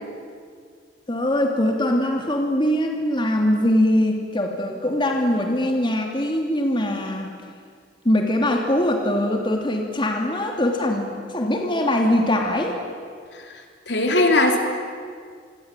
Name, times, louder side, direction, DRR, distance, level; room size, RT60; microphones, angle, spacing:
voice 1, 1.1-7.3 8.0-12.8, left 1 dB, 25° left, 2 dB, 2.8 m, -22 dB
voice 2, 13.9-14.6, left 2 dB, 65° left, 4 dB, 3.6 m, -18 dB
27.0 x 24.0 x 9.1 m, 2.1 s
head